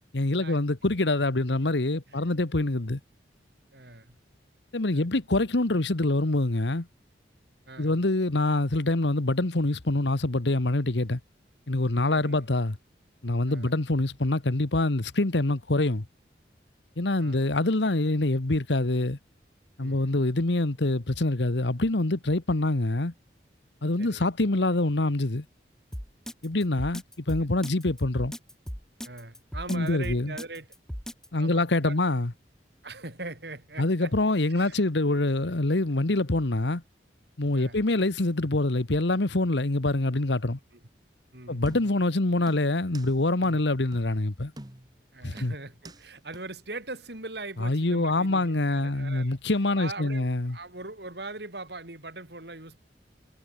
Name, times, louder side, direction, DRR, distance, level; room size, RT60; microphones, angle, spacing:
voice 1, 0.1-3.0 4.7-6.9 7.8-11.2 11.7-12.8 13.2-16.0 17.0-19.2 19.8-23.1 23.8-25.4 26.4-28.3 29.7-30.3 31.3-32.3 33.8-36.8 37.4-40.6 41.5-44.5 45.2-45.5 47.6-50.6, left 2 dB, 80° left, 1.4 m, -25 dB
voice 2, 3.7-4.2 4.9-5.1 7.7-8.0 12.1-12.4 13.5-13.7 17.2-17.5 19.8-20.1 24.0-24.3 29.0-30.7 31.4-32.0 32.8-34.1 34.5-34.8 37.5-37.8 40.7-40.8 41.3-41.6 43.4-43.6 45.1-49.4 49.8-52.8, right 2 dB, 65° right, 4.5 m, -41 dB
Drum kit, 25.9-31.3, equal, 5° left, 2.0 m, -37 dB
sound 1, 41.7-42.1 42.5-43.1 43.4-43.5 43.9-44.1 44.6-45.0 45.4-46.0 46.3-46.4, right 1 dB, 20° right, 1.5 m, -46 dB
head